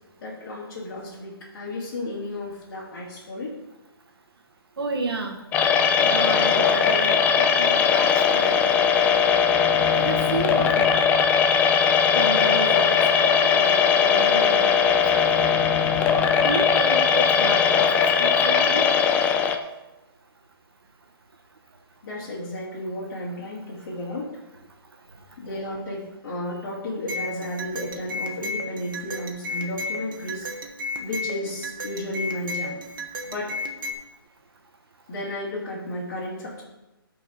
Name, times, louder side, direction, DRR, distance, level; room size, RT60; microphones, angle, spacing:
voice 1, 0.2-3.5 13.0-13.3 22.0-24.3 25.4-30.5 31.0-32.7 33.2-33.5 35.1-36.6, left 1 dB, 45° left, -7 dB, 3.2 m, -33 dB
voice 2, 4.8-5.4 6.1-7.2 7.6-8.6 9.9-10.9 12.1-12.9 13.2-15.6 16.4-17.6 18.2-18.8, right 3 dB, 85° right, 2 dB, 1.5 m, -31 dB
sound 1, 5.5-19.6, left 6 dB, 10° left, 0.4 m, -19 dB
sound 2, 27.1-33.9, left 2 dB, 60° right, 1.5 m, -33 dB
13.5 x 5.1 x 4.5 m, 1.0 s
hypercardioid pair, 155°, 13 cm